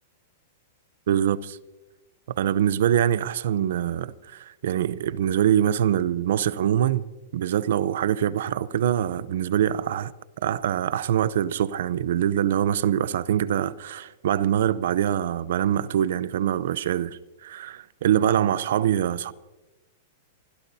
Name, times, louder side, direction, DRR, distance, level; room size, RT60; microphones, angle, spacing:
voice 1, 1.1-1.6 2.4-7.1 7.3-10.1 10.4-19.3, right 10 dB, 70° right, 0.6 m, -24 dB
25.5 x 16.0 x 2.7 m
supercardioid pair, 150°, 0 cm